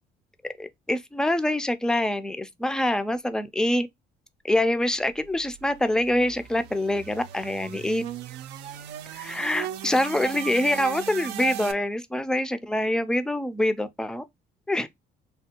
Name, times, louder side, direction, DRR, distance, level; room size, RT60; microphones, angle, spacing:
voice 1, 0.4-3.9 4.4-8.0 9.1-14.2 14.7-14.9, left 1 dB, 5° left, 0.3 m, -25 dB
sound 1, 5.3-11.7, right 12 dB, 90° right, 0.4 m, -37 dB
3.3 x 2.2 x 2.8 m
cardioid pair, 110°, 17 cm